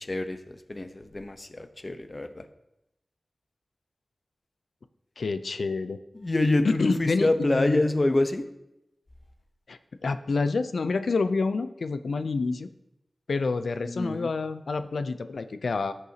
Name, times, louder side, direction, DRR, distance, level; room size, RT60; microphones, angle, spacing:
voice 1, 0.1-2.4 6.1-8.5 13.9-14.3, left 2 dB, 40° left, 9 dB, 0.8 m, -26 dB
voice 2, 5.2-6.0 6.6-7.8 9.7-12.7 13.3-15.9, left 4 dB, 85° left, 11 dB, 0.4 m, -28 dB
15.5 x 6.7 x 2.8 m, 0.87 s
wide cardioid pair, 55°, 0 cm